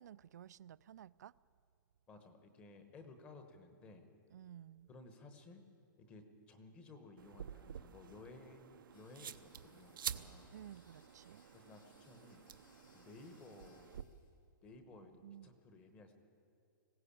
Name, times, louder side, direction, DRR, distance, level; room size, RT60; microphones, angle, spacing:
voice 1, 0.0-1.3 4.3-4.9 10.5-11.4 15.2-15.5, right 10 dB, 55° right, 0.4 m, -54 dB
voice 2, 2.1-4.1 4.9-5.6 6.0-10.5 11.5-12.4 12.9-14.0 14.6-16.1, left 3 dB, 10° left, 1.1 m, -57 dB
sound 1, 7.2-14.0, right 8 dB, 75° right, 0.8 m, -49 dB
sound 2, 8.9-14.3, left 4 dB, 70° left, 3.8 m, -69 dB
20.0 x 16.5 x 8.5 m
hypercardioid pair, 180°, 11 cm